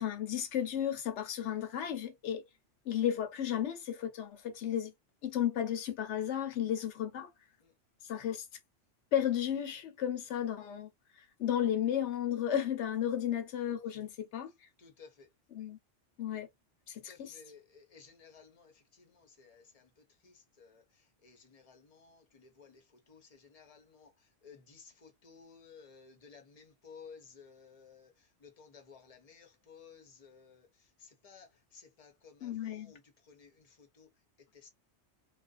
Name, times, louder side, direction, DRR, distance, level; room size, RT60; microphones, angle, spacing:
voice 1, 0.0-2.4 2.9-4.9 5.2-7.3 8.1-8.5 9.1-10.9 11.4-14.5 15.5-15.8 16.2-16.5 16.9-17.4 32.4-32.9, left 10 dB, 75° left, 1.0 m, -33 dB
voice 2, 14.8-15.3 17.1-19.9 20.2-20.8 21.2-22.8 23.1-24.1 24.4-28.1 28.4-30.7 31.0-31.5 31.7-33.0 33.3-34.1 34.5-34.7, left 5 dB, 40° left, 0.7 m, -56 dB
2.5 x 2.1 x 2.3 m
omnidirectional pair, 1.2 m